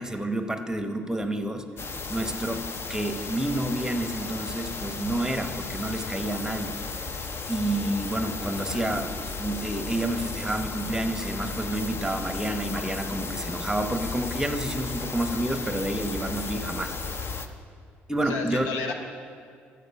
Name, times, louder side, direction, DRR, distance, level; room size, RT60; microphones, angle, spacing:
voice 1, 0.0-1.7 2.1-6.8 7.5-9.1 9.4-17.2 18.1-18.7, right 1 dB, 10° right, 7 dB, 0.9 m, -29 dB
sound 1, 1.8-17.5, left 4 dB, 45° left, 0.7 m, -34 dB
voice 2, 8.6-9.1 18.2-18.9, left 4 dB, 85° left, 4 dB, 0.8 m, -33 dB
14.0 x 4.9 x 5.9 m, 2.2 s
hypercardioid pair, 55°, 6 cm